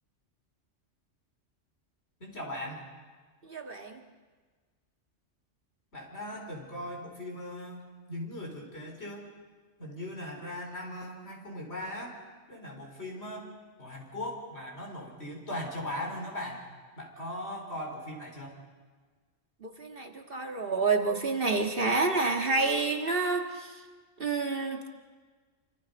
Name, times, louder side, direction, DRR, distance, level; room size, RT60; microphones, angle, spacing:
voice 1, 2.2-2.8 5.9-9.3 9.8-12.2 12.5-13.5 13.8-16.6 17.0-18.6, left 1 dB, 60° left, 0 dB, 5.1 m, -39 dB
voice 2, 3.4-4.0 19.6-23.8 24.2-24.9, right 3 dB, 50° right, 3 dB, 2.0 m, -29 dB
28.0 x 26.0 x 5.4 m, 1.4 s
omnidirectional pair, 1.3 m